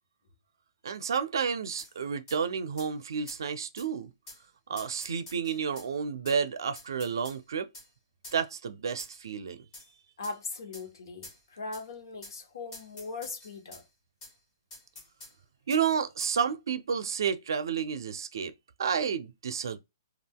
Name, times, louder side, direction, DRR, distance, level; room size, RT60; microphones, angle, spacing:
voice 1, 0.8-4.1 4.7-7.7 8.3-9.6 15.7-18.5 18.8-19.8, right 6 dB, 70° right, 0.5 m, -31 dB
sound 1, 1.8-1.9 2.3-2.4 2.8-2.9 3.3-3.4 3.8-3.9 4.3-4.4 4.8-5.9 6.3-6.4 6.8-7.4 7.7-7.9 8.2-8.4 9.0-9.3 9.7-9.9 10.2-10.4 10.7-10.9 11.2-11.4 11.7-11.8 12.2-12.4 12.7-13.8 14.2-14.3 14.7-15.3 15.7-15.8 16.2-16.4, left 1 dB, 20° left, 1.2 m, -48 dB
voice 2, 10.2-13.8, left 3 dB, 70° left, 1.0 m, -40 dB
3.4 x 2.4 x 2.2 m
hypercardioid pair, 170°, 2 cm